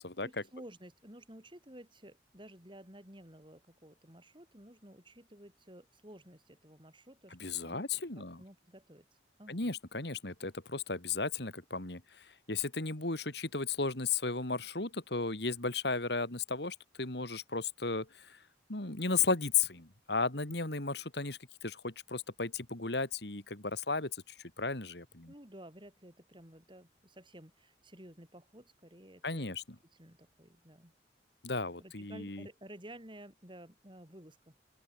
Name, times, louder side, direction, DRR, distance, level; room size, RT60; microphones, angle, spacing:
voice 1, 0.2-7.8 8.2-9.0 9.4-9.7 25.3-29.5 29.9-30.9 31.8-34.6, right 1 dB, 25° right, 6.2 m, -53 dB
voice 2, 7.4-8.4 9.5-18.4 18.7-25.3 29.2-29.6 31.4-32.5, left 4 dB, 65° left, 2.7 m, -35 dB
open air
head